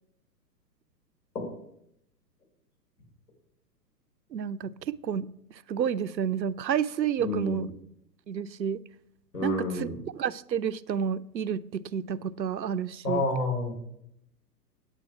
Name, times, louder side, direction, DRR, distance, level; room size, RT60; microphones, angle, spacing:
voice 1, 4.3-5.3 5.7-7.7 8.3-8.8 9.4-9.9 10.1-13.2, right 8 dB, 85° right, 0.6 m, -30 dB
voice 2, 7.2-7.6 9.3-10.0 13.0-13.7, left 2 dB, 65° left, 5.1 m, -29 dB
9.1 x 9.1 x 4.8 m
figure-of-eight pair, 120°, 50 cm